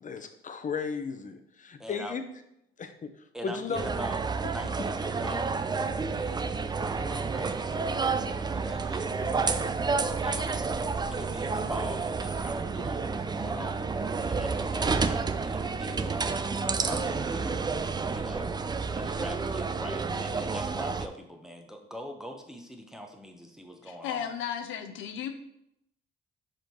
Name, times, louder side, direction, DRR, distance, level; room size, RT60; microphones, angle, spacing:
voice 1, 0.0-2.2 2.8-3.1 3.4-3.8 10.4-10.5, left 5 dB, 40° left, 8 dB, 0.7 m, -35 dB
voice 2, 1.8-2.1 3.3-9.8 10.2-14.0 14.3-17.7 18.1-18.6 18.9-24.3, equal, ahead, 3 dB, 0.9 m, -43 dB
sound 1, 3.7-21.1, right 4 dB, 20° right, 0.4 m, -30 dB
voice 3, 23.9-25.3, left 8 dB, 90° left, 7 dB, 0.6 m, -35 dB
5.1 x 4.5 x 4.6 m, 0.78 s
cardioid pair, 90°, 20 cm